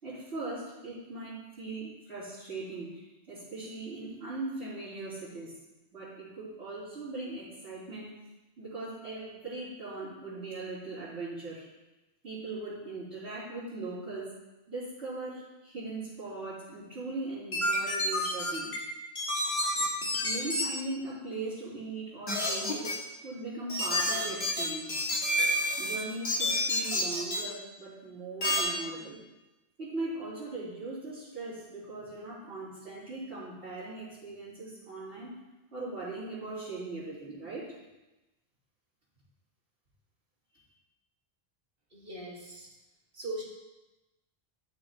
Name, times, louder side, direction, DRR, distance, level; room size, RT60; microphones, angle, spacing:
voice 1, 0.0-5.5 5.9-8.1 8.6-11.6 12.2-14.3 14.7-18.7 20.2-22.9 23.2-25.0 25.8-29.2 29.8-35.3 35.7-37.7, right 2 dB, 75° right, -15 dB, 3.8 m, -39 dB
sound 1, 17.5-18.8 19.2-20.6 22.3-22.9 23.7-26.0 26.2-27.4 28.4-28.6, left 1 dB, 70° left, 1.9 m, -29 dB
voice 2, 41.9-42.7 43.1-43.4, right 1 dB, 55° right, -3 dB, 1.9 m, -39 dB
13.0 x 6.7 x 2.9 m, 1.0 s
omnidirectional pair, 1.1 m